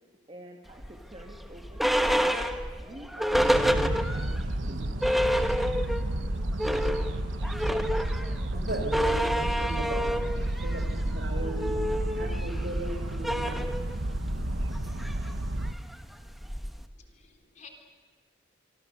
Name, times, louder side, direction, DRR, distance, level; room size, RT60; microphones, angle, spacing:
voice 1, 0.3-2.5 2.8-5.0, right 1 dB, 30° right, 1 dB, 2.0 m, -48 dB
sound 1, 0.8-4.4 4.7-4.8 5.0-6.1 6.4-16.9, equal, ahead, 1.1 m, -29 dB
sound 2, 3.3-15.7, right 1 dB, 70° right, 1.3 m, -31 dB
voice 2, 8.5-10.3 10.6-13.6, right 1 dB, 55° right, 4 dB, 4.9 m, -37 dB
voice 3, 16.5-17.7, left 5 dB, 35° left, 3 dB, 3.6 m, -55 dB
25.5 x 25.0 x 6.7 m, 1.5 s
head